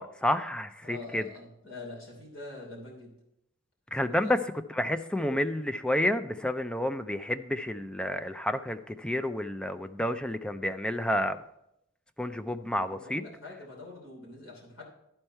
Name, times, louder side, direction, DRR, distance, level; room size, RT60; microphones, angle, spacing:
voice 1, 0.0-1.2 3.9-4.4 4.8-11.4 12.2-13.2, left 1 dB, 5° left, 10 dB, 0.3 m, -30 dB
voice 2, 0.8-3.1 4.1-4.3 12.9-14.8, left 2 dB, 75° left, -2 dB, 3.0 m, -45 dB
12.5 x 4.4 x 4.5 m, 0.81 s
head